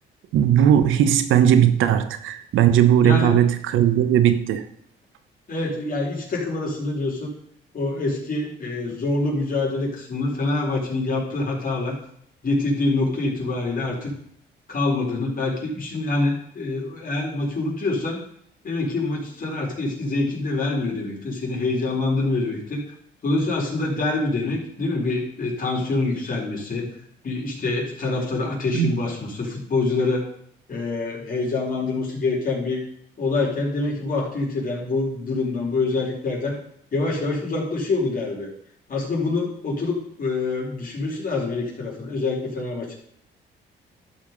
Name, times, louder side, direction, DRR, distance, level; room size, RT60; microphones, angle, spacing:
voice 1, 0.3-4.6 28.7-28.9, right 10 dB, 85° right, 1.1 m, -18 dB
voice 2, 3.0-3.5 5.5-7.3 7.7-11.9 12.4-14.1 14.7-18.2 18.6-22.8 23.2-26.9 27.2-30.2 30.7-32.8 33.2-36.6 36.9-38.5 38.9-43.0, left 3 dB, 45° left, 4.3 m, -25 dB
13.0 x 5.2 x 5.3 m
cardioid pair, 90°, 20 cm